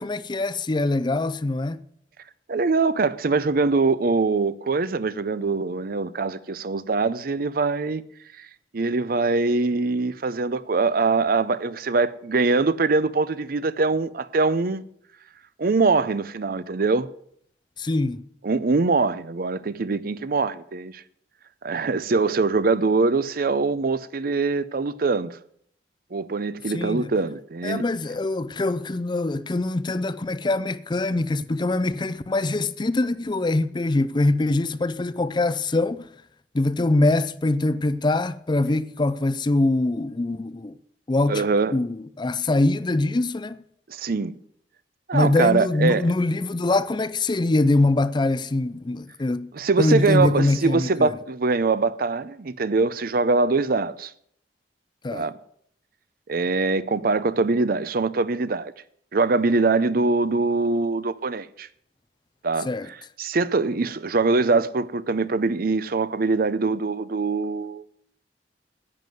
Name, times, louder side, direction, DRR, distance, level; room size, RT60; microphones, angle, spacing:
voice 1, 0.0-1.8 17.8-18.2 26.7-27.1 27.6-36.1 36.5-40.7 41.1-41.4 41.7-43.6 45.1-49.5 49.8-51.1 55.0-55.3 62.6-62.9, left 2 dB, 25° left, 0.5 m, -23 dB
voice 2, 2.5-8.0 8.7-14.8 15.6-17.1 18.4-21.0 21.6-25.4 26.1-27.8 41.3-41.7 43.9-44.4 45.1-46.0 49.5-54.1 55.1-55.3 56.3-58.7 59.1-61.7 62.4-62.7 63.2-67.8, right 3 dB, 55° right, 0.6 m, -23 dB
10.5 x 9.3 x 7.8 m
head